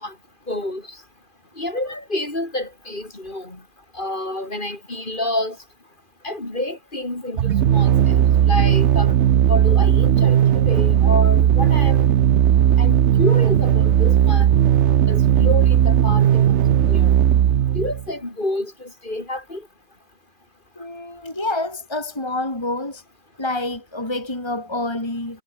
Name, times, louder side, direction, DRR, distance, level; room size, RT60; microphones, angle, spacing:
voice 1, 0.5-0.8 1.6-3.6 3.9-5.6 6.2-9.1 9.5-12.1 12.8-14.5 15.1-16.4 16.8-17.1 17.7-19.6, left 1 dB, 45° left, 4.4 m, -28 dB
sound 1, 7.4-18.1, right 10 dB, 75° right, 1.1 m, -16 dB
voice 2, 20.7-23.0 23.4-25.4, left 2 dB, 20° left, 3.3 m, -27 dB
omnidirectional pair, 1.2 m